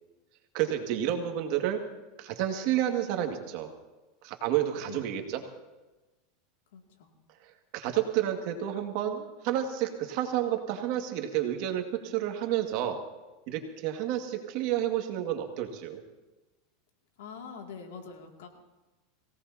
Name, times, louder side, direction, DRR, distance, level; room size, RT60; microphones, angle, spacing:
voice 1, 0.5-1.8 2.2-3.7 4.2-5.4 7.4-13.0 13.5-16.0, right 11 dB, 60° right, 4 dB, 2.0 m, -30 dB
voice 2, 6.7-7.1 17.2-18.5, left 5 dB, 85° left, 2 dB, 2.4 m, -44 dB
22.5 x 17.5 x 2.8 m, 1.1 s
supercardioid pair, 135°, 0 cm